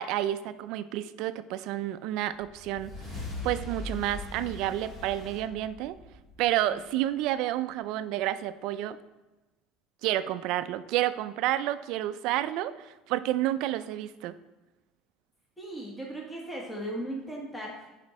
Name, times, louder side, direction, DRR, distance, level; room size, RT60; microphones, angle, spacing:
voice 1, 0.0-2.9 3.4-6.0 6.4-9.0 10.0-14.3, right 13 dB, 60° right, 13 dB, 0.4 m, -30 dB
sound 1, 2.3-6.9, left 2 dB, 25° left, 1.9 m, -40 dB
voice 2, 15.6-17.9, right 1 dB, 5° left, -3 dB, 1.5 m, -37 dB
10.5 x 5.0 x 4.3 m, 1.1 s
cardioid pair, 150°, 0 cm